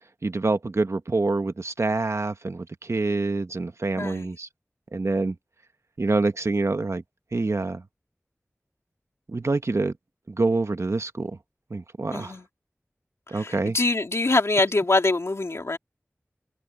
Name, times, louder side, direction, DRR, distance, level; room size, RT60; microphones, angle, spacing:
voice 1, 0.2-4.5 4.9-5.3 6.0-7.0 7.3-7.8 9.3-9.9 10.3-11.3 11.7-12.3 13.3-13.8, right 3 dB, 70° right, 1.1 m, -26 dB
voice 2, 4.0-4.4 12.1-12.4 13.3-15.8, left 2 dB, 65° left, 2.9 m, -24 dB
wide cardioid pair, 40°, 5 cm